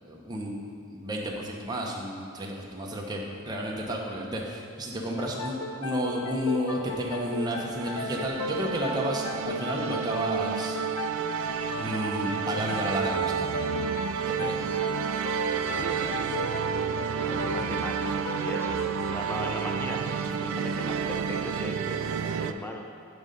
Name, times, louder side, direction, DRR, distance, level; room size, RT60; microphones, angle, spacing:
voice 1, 0.0-10.8 11.8-13.6 14.2-14.5, equal, 20° right, -2 dB, 0.7 m, -32 dB
sound 1, 5.2-20.5, left 2 dB, 80° left, 0.5 m, -37 dB
sound 2, 7.1-22.5, right 7 dB, 70° right, 0.3 m, -31 dB
voice 2, 15.7-16.3 16.6-16.8 17.1-22.9, left 1 dB, 10° left, 1 dB, 0.4 m, -39 dB
9.5 x 3.8 x 5.2 m, 2.3 s
head